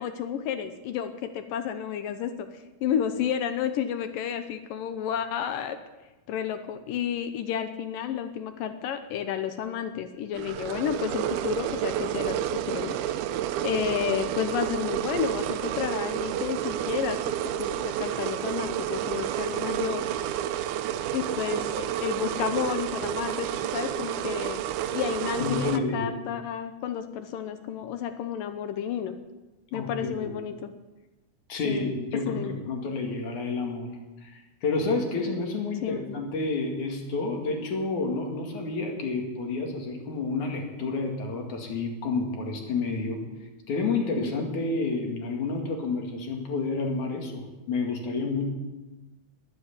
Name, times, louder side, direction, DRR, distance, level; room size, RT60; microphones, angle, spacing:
voice 1, 0.0-2.5 2.8-5.8 6.3-13.0 13.6-20.1 21.1-24.6 24.9-29.2 29.7-30.7 31.6-31.9 32.3-32.5 35.8-36.0, left 9 dB, 75° left, 9 dB, 2.3 m, -31 dB
sound 1, 10.3-25.8, right 11 dB, 85° right, 2.6 m, -30 dB
voice 2, 25.4-26.1 29.7-30.2 31.5-33.9 34.2-43.2 43.7-48.5, left 3 dB, 55° left, 2 dB, 3.4 m, -29 dB
21.0 x 8.2 x 8.4 m, 1.1 s
omnidirectional pair, 4.4 m